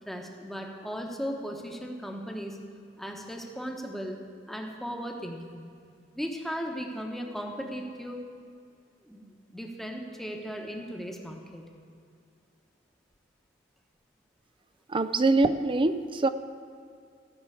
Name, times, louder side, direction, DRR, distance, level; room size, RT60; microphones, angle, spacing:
voice 1, 0.0-2.6 3.0-4.2 4.5-5.8 6.1-8.2 9.0-11.7, equal, ahead, 1 dB, 1.1 m, -37 dB
voice 2, 14.9-16.3, right 3 dB, 25° right, 12 dB, 0.5 m, -24 dB
15.0 x 6.1 x 8.4 m, 2.3 s
head